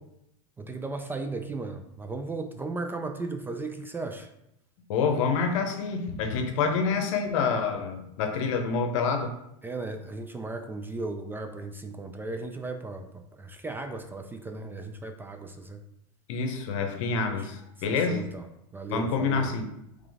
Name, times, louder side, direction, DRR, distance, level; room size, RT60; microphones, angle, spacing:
voice 1, 0.6-4.3 9.6-15.8 17.3-17.5 17.9-18.5 18.7-19.5, right 3 dB, 10° right, 6 dB, 0.3 m, -36 dB
voice 2, 4.9-9.3 16.3-18.2 18.9-19.7, left 5 dB, 70° left, 5 dB, 0.8 m, -27 dB
3.7 x 3.4 x 3.5 m, 0.81 s
hypercardioid pair, 105°, 17 cm